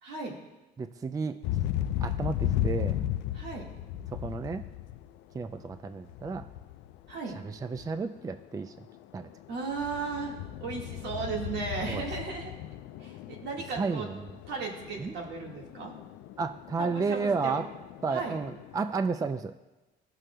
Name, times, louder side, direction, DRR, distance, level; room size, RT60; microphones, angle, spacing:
voice 1, 0.0-0.4 3.3-3.7 7.1-7.4 9.5-10.3 10.6-12.5 13.0-14.1 14.5-15.9 16.8-17.6 18.1-18.4, right 4 dB, 75° right, 0 dB, 1.7 m, -36 dB
voice 2, 0.8-1.4 2.0-3.0 4.1-4.6 5.3-6.5 7.3-8.7 9.1-9.3 11.9-12.1 13.8-14.3 15.0-15.1 16.4-17.7 18.0-19.6, right 4 dB, 20° right, 9 dB, 0.4 m, -32 dB
sound 1, 1.4-7.3 7.6-8.3 8.7-18.9, left 12 dB, 85° left, 0.4 m, -36 dB
16.0 x 6.2 x 2.2 m, 1.1 s
cardioid pair, 100°, 18 cm